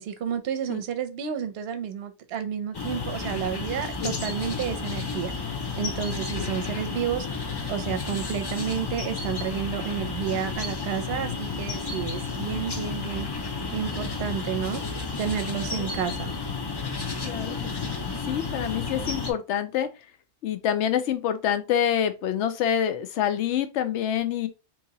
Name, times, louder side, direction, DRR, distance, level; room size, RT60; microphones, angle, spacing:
voice 1, 0.0-5.3 5.8-7.3 7.7-13.4 13.7-16.3, right 8 dB, 65° right, 0.8 m, -31 dB
sound 1, 2.7-19.3, left 4 dB, 30° left, 0.4 m, -32 dB
voice 2, 17.2-17.6 17.8-17.9 18.3-19.9 20.4-24.5, left 9 dB, 80° left, 0.9 m, -26 dB
2.9 x 2.8 x 3.9 m
omnidirectional pair, 1.2 m